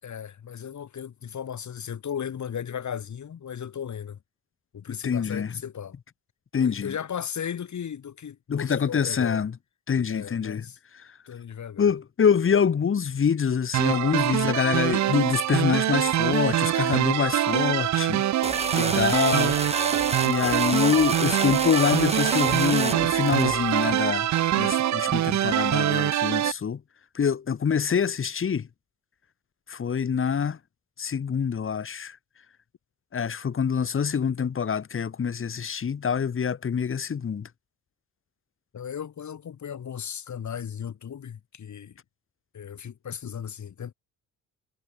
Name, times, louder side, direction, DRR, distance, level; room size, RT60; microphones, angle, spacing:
voice 1, 0.0-4.2 4.7-5.9 6.6-9.4 10.1-10.8 11.3-11.9 18.7-19.2 19.5-19.6 38.7-42.0 42.5-43.9, left 8 dB, 50° left, 8.0 m, -36 dB
voice 2, 5.0-5.5 6.5-6.9 8.5-9.5 9.9-10.7 11.0-11.1 11.8-18.2 18.8-19.5 20.2-24.3 24.5-26.8 27.2-28.7 29.7-30.6 31.0-32.2 33.1-37.5, left 7 dB, 35° left, 1.6 m, -25 dB
sound 1, 13.7-26.5, right 12 dB, 50° right, 0.8 m, -24 dB
sound 2, 18.4-23.9, right 3 dB, 15° right, 3.1 m, -30 dB
supercardioid pair, 70°, 36 cm